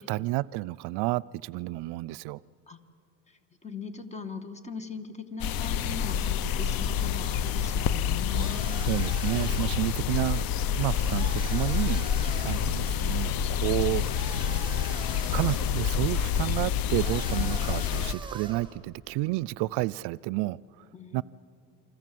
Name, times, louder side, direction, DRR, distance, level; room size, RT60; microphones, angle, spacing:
voice 1, 0.0-2.4 8.9-10.4 10.7-12.1 12.4-14.1 15.3-20.8 21.1-21.2, right 19 dB, 85° right, 23 dB, 0.5 m, -30 dB
voice 2, 3.3-8.8 20.9-21.2, left 5 dB, 15° left, 9 dB, 1.8 m, -40 dB
sound 1, 5.4-18.1, left 8 dB, 60° left, 0.9 m, -28 dB
sound 2, 8.3-9.9 11.0-12.8 14.0-15.8 16.9-18.8, right 3 dB, 10° right, 2.2 m, -44 dB
28.5 x 25.5 x 7.7 m, 2.8 s
cardioid pair, 135°, 39 cm